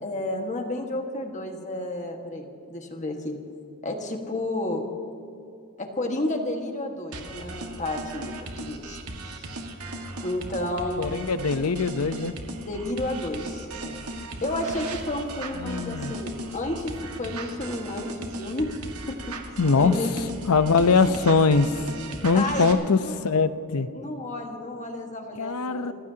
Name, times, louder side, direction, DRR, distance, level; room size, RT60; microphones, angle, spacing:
voice 1, 0.0-3.3 3.8-4.8 5.8-9.0 9.3-9.4 10.2-11.2 12.6-14.0 14.4-18.7 19.1-19.3 19.8-20.1 21.1-21.2 22.3-23.2 23.9-25.9, left 1 dB, 35° left, 3 dB, 1.6 m, -31 dB
sound 1, 7.1-22.7, right 2 dB, 80° right, 1.8 m, -37 dB
voice 2, 11.0-12.4 15.6-16.1 19.6-20.0 20.5-21.8 22.2-23.9 25.4-25.9, left 4 dB, 85° left, 12 dB, 0.7 m, -22 dB
28.0 x 16.0 x 2.9 m, 2.6 s
head